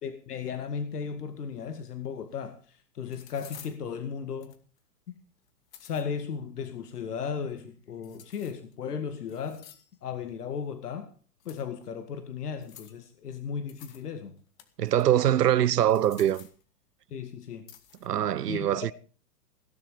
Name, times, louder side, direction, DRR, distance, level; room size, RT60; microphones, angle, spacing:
voice 1, 0.0-4.5 5.8-9.6 10.0-11.1 11.5-14.3 17.1-17.6 18.5-18.7, left 6 dB, 75° left, 2.3 m, -35 dB
sound 1, 2.2-2.3 3.1-3.8 4.4-4.8 5.5-6.0 8.0-8.7 9.3-10.0 11.4-11.9 12.6-13.0 13.7-14.1 14.4-15.3 15.8-16.6 17.7-18.1, left 10 dB, 55° left, 2.5 m, -51 dB
voice 2, 14.8-16.5 18.0-18.9, right 11 dB, 80° right, 0.9 m, -23 dB
17.5 x 10.5 x 5.1 m
hypercardioid pair, 130°, 47 cm